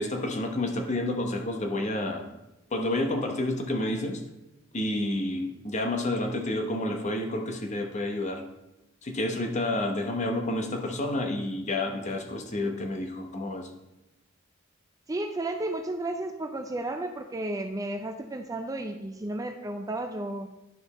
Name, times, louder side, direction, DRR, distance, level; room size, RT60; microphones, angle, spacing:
voice 1, 0.0-2.3 2.7-4.2 4.7-8.4 9.0-13.7, left 1 dB, 35° left, 4 dB, 0.9 m, -29 dB
voice 2, 15.1-20.5, right 2 dB, 15° right, 6 dB, 0.4 m, -33 dB
10.5 x 5.1 x 4.1 m, 0.93 s
head